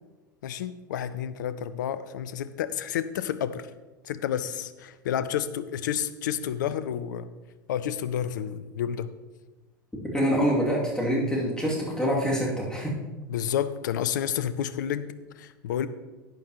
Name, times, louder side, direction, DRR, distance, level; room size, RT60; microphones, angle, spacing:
voice 1, 0.4-3.7 4.0-7.3 7.7-9.1 13.3-15.9, left 9 dB, 65° left, 14 dB, 0.6 m, -30 dB
voice 2, 10.1-13.0, equal, 5° left, -4 dB, 2.6 m, -25 dB
11.0 x 9.0 x 3.0 m, 1.2 s
figure-of-eight pair, 85°, 11 cm